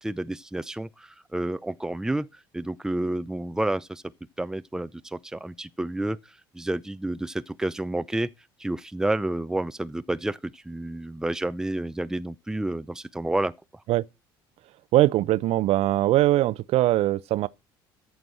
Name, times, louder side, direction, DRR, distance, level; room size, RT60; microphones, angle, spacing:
voice 1, 0.0-2.3 2.5-4.0 4.4-8.3 8.6-13.8, right 1 dB, 5° right, 0.6 m, -30 dB
voice 2, 14.9-17.5, right 15 dB, 60° right, 0.7 m, -21 dB
14.0 x 4.7 x 7.7 m
hypercardioid pair, 65°, 12 cm